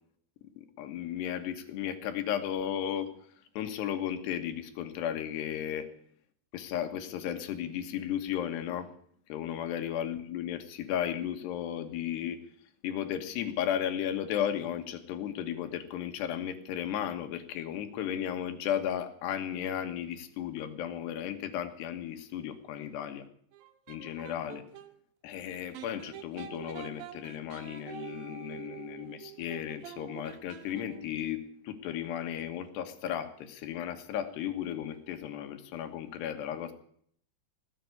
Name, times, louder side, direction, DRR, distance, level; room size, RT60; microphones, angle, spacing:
voice 1, 0.6-3.1 3.6-5.9 6.5-8.9 9.3-12.4 12.8-23.2 23.9-24.6 25.2-36.7, left 10 dB, 85° left, 8 dB, 3.5 m, -35 dB
sound 1, 23.5-24.9 25.7-31.2, right 10 dB, 70° right, 2.5 m, -47 dB
18.5 x 7.7 x 9.6 m, 0.64 s
omnidirectional pair, 4.7 m